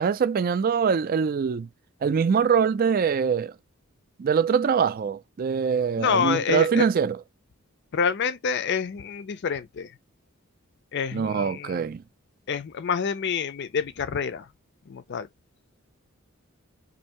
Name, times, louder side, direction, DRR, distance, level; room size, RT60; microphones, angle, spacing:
voice 1, 0.0-1.7 2.0-3.5 4.2-7.2 11.1-12.0, right 6 dB, 40° right, 0.3 m, -23 dB
voice 2, 6.0-6.9 7.9-9.9 10.9-11.8 12.5-14.5 14.9-15.3, left 6 dB, 50° left, 0.4 m, -27 dB
2.7 x 2.6 x 4.3 m
head